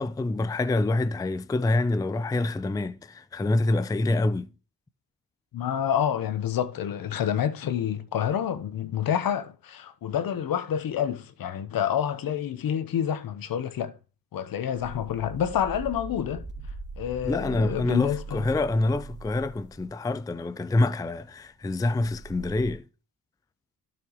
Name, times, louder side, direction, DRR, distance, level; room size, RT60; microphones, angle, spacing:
voice 1, 0.0-4.5 17.2-22.8, left 2 dB, 10° left, 0.4 m, -26 dB
voice 2, 5.5-14.0 14.3-16.5 17.0-18.5, left 9 dB, 65° left, 1.1 m, -28 dB
sound 1, 14.8-21.4 22.0-22.7, right 3 dB, 30° right, 2.8 m, -41 dB
12.0 x 6.1 x 3.1 m
cardioid pair, 75°, 37 cm